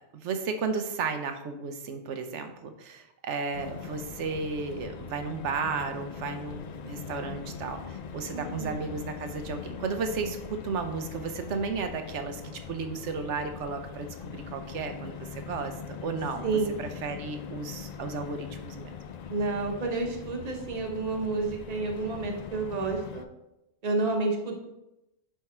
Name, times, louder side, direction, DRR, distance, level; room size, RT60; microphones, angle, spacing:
voice 1, 0.1-15.7 16.0-16.5 16.8-18.9, right 4 dB, 85° right, 7 dB, 1.1 m, -34 dB
sound 1, 3.5-23.3, left 7 dB, 60° left, 0.4 m, -41 dB
voice 2, 8.3-8.7 16.4-16.8 19.3-23.3 23.8-24.6, right 3 dB, 35° right, 1 dB, 1.1 m, -30 dB
10.0 x 3.6 x 4.3 m, 0.90 s
omnidirectional pair, 1.2 m